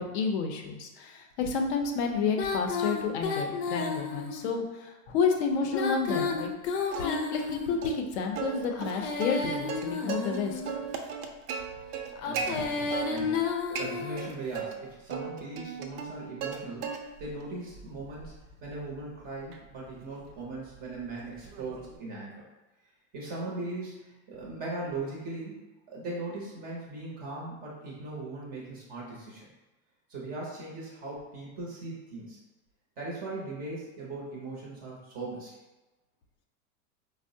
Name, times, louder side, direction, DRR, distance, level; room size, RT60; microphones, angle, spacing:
voice 1, 0.0-6.5 7.0-10.6 12.5-12.9 13.2-13.3, left 5 dB, 50° left, 3 dB, 0.5 m, -30 dB
Female singing, 2.3-4.5 5.6-7.9 8.7-10.9 12.1-14.4, left 5 dB, 90° left, 0.6 m, -32 dB
Plucked string instrument, 6.9-7.5 7.8-8.0 8.4-10.4 10.7-12.5 12.9-13.4 13.7-14.7 15.1-16.6 16.8-17.3 17.7-22.0, right 6 dB, 80° right, 0.6 m, -37 dB
voice 2, 12.2-12.8 13.1-13.3 13.7-18.3 18.6-22.4 23.1-29.5 30.1-32.4 33.0-35.5, right 2 dB, 20° right, -4 dB, 0.5 m, -39 dB
4.4 x 2.0 x 2.6 m, 1.1 s
supercardioid pair, 155°, 45 cm